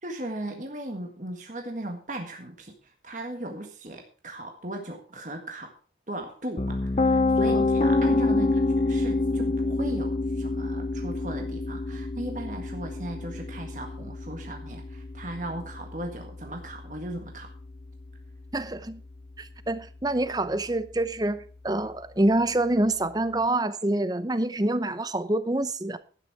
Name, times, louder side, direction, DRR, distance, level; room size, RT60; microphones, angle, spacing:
voice 1, 0.0-5.8 6.1-17.5, right 1 dB, 45° right, 1.7 m, -37 dB
Piano, 6.6-18.5, left 2 dB, 35° left, 0.5 m, -27 dB
voice 2, 18.5-19.0 19.4-26.0, right 1 dB, 20° right, 0.7 m, -26 dB
12.0 x 9.3 x 4.8 m
head